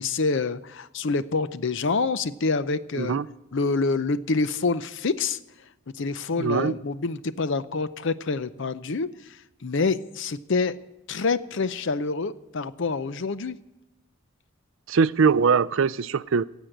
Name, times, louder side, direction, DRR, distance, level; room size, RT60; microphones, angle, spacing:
voice 1, 0.0-3.2 3.5-5.4 5.9-9.1 9.6-10.8 11.1-13.6, left 4 dB, 60° left, 0.6 m, -26 dB
voice 2, 3.0-3.3 6.4-6.8 14.9-16.4, right 5 dB, 60° right, 0.4 m, -22 dB
16.0 x 8.2 x 7.8 m
head